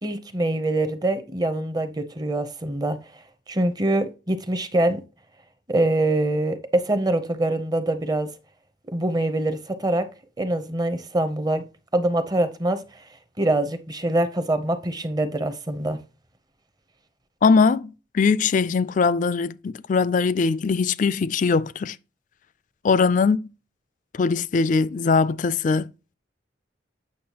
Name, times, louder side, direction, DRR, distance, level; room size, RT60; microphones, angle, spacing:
voice 1, 0.0-3.0 3.5-5.0 5.7-8.3 8.9-10.1 10.4-11.6 11.9-13.0 13.4-16.0, right 1 dB, 20° right, 0.6 m, -24 dB
voice 2, 17.4-22.0 22.8-23.5 24.1-25.9, left 4 dB, 40° left, 0.3 m, -21 dB
8.5 x 6.0 x 2.9 m
head